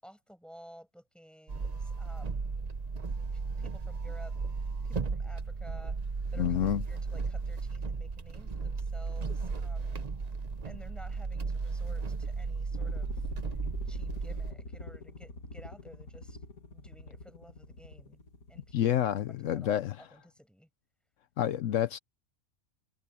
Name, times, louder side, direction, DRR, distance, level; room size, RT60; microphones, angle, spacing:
voice 1, 0.0-2.7 3.3-10.1 10.6-13.3 13.9-16.4 16.7-18.2 18.5-19.0 19.3-20.7, equal, ahead, 7.6 m, -54 dB
sound 1, 1.5-14.5, right 4 dB, 35° right, 0.9 m, -35 dB
voice 2, 6.4-6.8 18.7-19.9 21.4-22.0, left 11 dB, 70° left, 0.9 m, -28 dB
sound 2, 12.7-19.4, left 2 dB, 85° left, 2.6 m, -45 dB
omnidirectional pair, 1.4 m